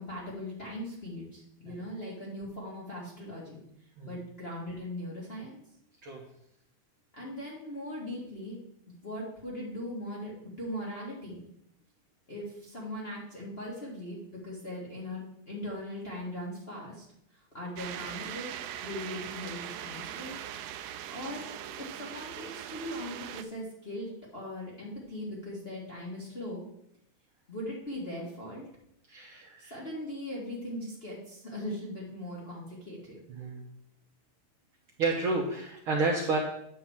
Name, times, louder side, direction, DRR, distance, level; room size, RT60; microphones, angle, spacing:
voice 1, 0.0-3.6 4.0-5.6 7.1-8.6 9.0-11.4 12.3-17.0 17.3-20.4 21.1-21.5 21.8-26.7 27.5-28.7 29.6-33.2, left 1 dB, 25° left, -5 dB, 1.5 m, -39 dB
sound 1, 17.8-23.4, right 10 dB, 80° right, 1.4 m, -40 dB
voice 2, 29.1-29.7 33.3-33.6 35.0-36.4, right 3 dB, 60° right, -1 dB, 1.5 m, -30 dB
9.2 x 3.9 x 7.1 m, 0.72 s
omnidirectional pair, 3.3 m